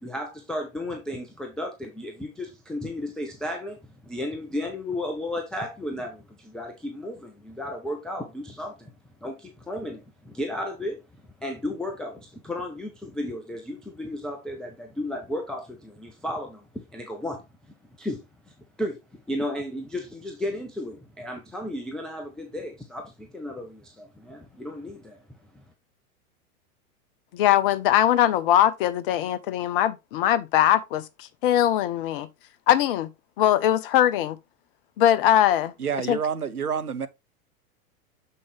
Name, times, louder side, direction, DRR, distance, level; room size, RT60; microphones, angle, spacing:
voice 1, 0.0-8.9 9.2-11.0 11.4-17.5 18.0-19.0 19.3-25.2 25.5-25.6, left 1 dB, ahead, 0.4 m, -34 dB
voice 2, 27.3-32.3 32.7-33.1 33.4-34.4 35.0-35.7 36.1-36.2, left 12 dB, 40° left, 0.7 m, -21 dB
voice 3, 35.8-37.1, right 7 dB, 85° right, 0.8 m, -28 dB
6.5 x 5.4 x 3.2 m
figure-of-eight pair, 90°, 44 cm